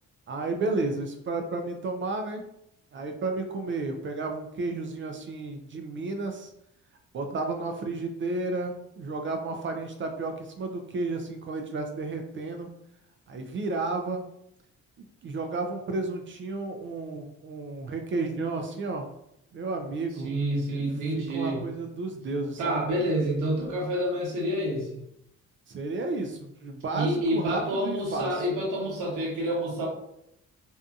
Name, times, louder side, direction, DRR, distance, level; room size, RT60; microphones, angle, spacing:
voice 1, 0.3-2.4 2.9-6.5 7.1-12.7 13.3-14.2 15.2-19.1 19.5-20.3 21.1-22.9 25.7-28.3, right 3 dB, 40° right, 5 dB, 0.4 m, -32 dB
voice 2, 20.2-21.6 22.6-25.0 26.9-29.9, right 1 dB, 85° right, -2 dB, 1.0 m, -28 dB
2.6 x 2.5 x 2.3 m, 0.79 s
cardioid pair, 90°, 30 cm